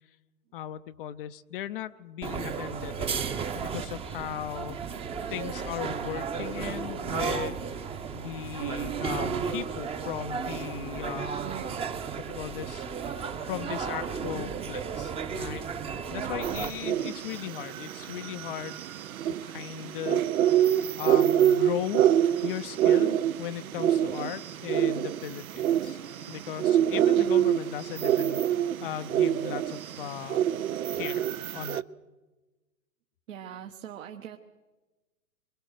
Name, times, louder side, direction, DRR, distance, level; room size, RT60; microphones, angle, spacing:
voice 1, 0.5-4.8 5.3-7.7 8.1-11.3 12.2-12.9 13.4-15.7 16.1-18.8 19.3-20.2 20.6-22.0 22.4-26.0 26.3-28.4 28.8-30.4 30.9-31.3 31.5-31.8, left 11 dB, 40° left, 12 dB, 0.6 m, -37 dB
sound 1, 2.2-16.7, right 6 dB, 15° right, 0.9 m, -34 dB
sound 2, 16.4-31.8, right 10 dB, 75° right, 0.8 m, -26 dB
voice 2, 27.1-27.5 33.3-34.4, right 9 dB, 60° right, 4 dB, 1.3 m, -42 dB
23.5 x 21.5 x 6.5 m, 1.2 s
hypercardioid pair, 125°, 42 cm